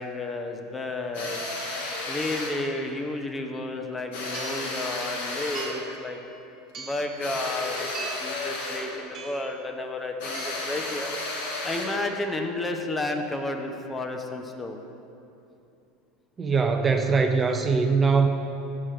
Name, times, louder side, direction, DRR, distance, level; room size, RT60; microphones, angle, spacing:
voice 1, 0.0-1.4 2.0-6.2 6.8-11.1 11.6-14.8, left 2 dB, 20° left, 5 dB, 0.7 m, -32 dB
sound 1, 1.1-2.6 4.1-5.8 7.2-8.9 10.2-12.0, left 2 dB, 75° left, 1.6 m, -33 dB
sound 2, 3.6-3.7 4.3-4.8 5.5-6.0 6.7-7.2 7.9-8.4 9.1-9.6 10.3-10.8, right 5 dB, 40° right, 1.1 m, -40 dB
voice 2, 16.4-18.3, right 4 dB, 25° right, 5 dB, 0.5 m, -22 dB
7.4 x 4.8 x 5.7 m, 2.7 s
hypercardioid pair, 85°, 0 cm